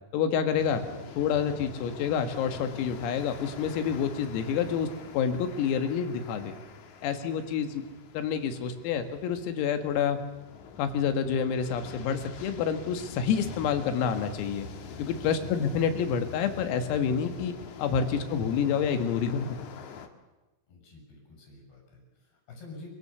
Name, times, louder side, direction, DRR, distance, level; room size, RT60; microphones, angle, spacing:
voice 1, 0.1-0.8 1.2-4.9 5.1-6.5 7.0-7.8 8.1-10.2 10.8-14.7 15.0-17.5 17.8-19.6, left 7 dB, 85° left, 7 dB, 4.6 m, -28 dB
sound 1, 0.6-20.1, left 6 dB, 65° left, 1.9 m, -45 dB
voice 2, 20.7-22.9, left 2 dB, 50° left, 0 dB, 9.1 m, -48 dB
27.0 x 24.0 x 7.1 m, 1.1 s
omnidirectional pair, 5.9 m